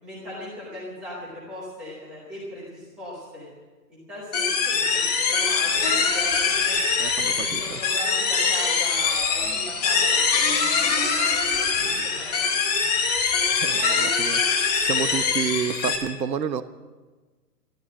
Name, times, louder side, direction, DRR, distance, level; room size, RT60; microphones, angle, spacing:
voice 1, 0.0-3.5 3.9-6.8 7.1-13.0, left 1 dB, ahead, -8 dB, 0.9 m, -39 dB
sound 1, 4.3-16.0, left 5 dB, 25° left, 1.5 m, -23 dB
voice 2, 7.0-7.8 13.5-14.4 14.8-16.6, right 7 dB, 85° right, 12 dB, 1.2 m, -29 dB
13.5 x 12.5 x 7.5 m, 1.3 s
hypercardioid pair, 175°, 49 cm